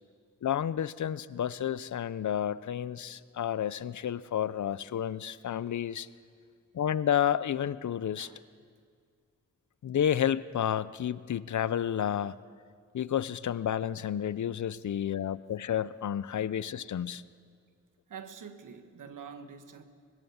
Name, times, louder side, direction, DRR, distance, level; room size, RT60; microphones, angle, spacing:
voice 1, 0.4-6.1 6.7-8.3 9.8-12.3 12.9-17.2, left 9 dB, 65° left, 0.7 m, -31 dB
voice 2, 18.1-19.8, right 6 dB, 80° right, 1.6 m, -46 dB
25.0 x 20.5 x 7.2 m
cardioid pair, 60°, 31 cm